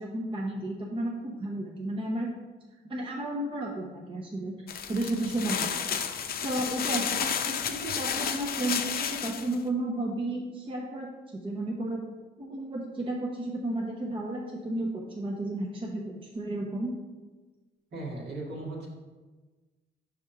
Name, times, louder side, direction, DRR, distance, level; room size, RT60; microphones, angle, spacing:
voice 1, 0.0-2.3 2.8-4.5 4.9-12.0 12.4-16.9, right 1 dB, 25° right, -1 dB, 0.7 m, -33 dB
sound 1, 4.7-9.6, left 7 dB, 50° left, 0.5 m, -31 dB
voice 2, 17.9-18.9, right 2 dB, 55° right, -3 dB, 1.9 m, -37 dB
5.1 x 3.6 x 5.6 m, 1.3 s
cardioid pair, 90°, 20 cm